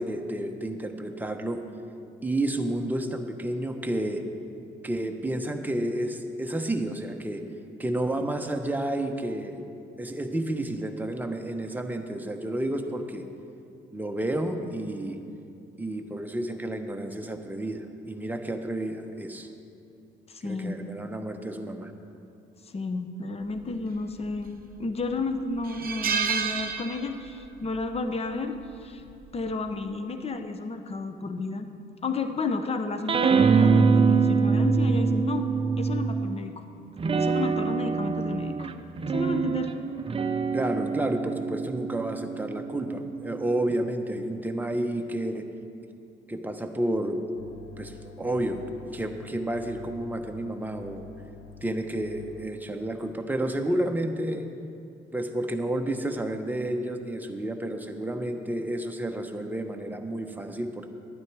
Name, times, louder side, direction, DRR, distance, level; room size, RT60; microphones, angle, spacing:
voice 1, 0.0-1.6 2.2-4.2 4.8-7.4 7.8-9.6 10.0-13.2 13.9-15.2 15.8-19.5 20.4-21.9 40.5-45.5 46.3-47.2 47.8-48.6 48.9-51.1 51.6-54.4 55.1-60.9, right 1 dB, 10° right, 4 dB, 0.9 m, -30 dB
voice 2, 20.3-20.8 22.6-29.0 29.3-31.7 32.0-35.5 35.8-36.6 37.2-38.7 39.1-39.7, left 3 dB, 30° left, 7 dB, 0.7 m, -32 dB
sound 1, 24.2-24.8 25.1-25.2 25.6-27.5 27.7-28.0 29.2-29.5, right 6 dB, 45° right, 0.9 m, -30 dB
sound 2, 33.1-36.4 37.0-43.8, right 5 dB, 30° right, 0.5 m, -25 dB
sound 3, 47.4-52.5, left 5 dB, 80° left, 0.7 m, -47 dB
12.0 x 9.3 x 4.7 m, 2.6 s
cardioid pair, 90°, 20 cm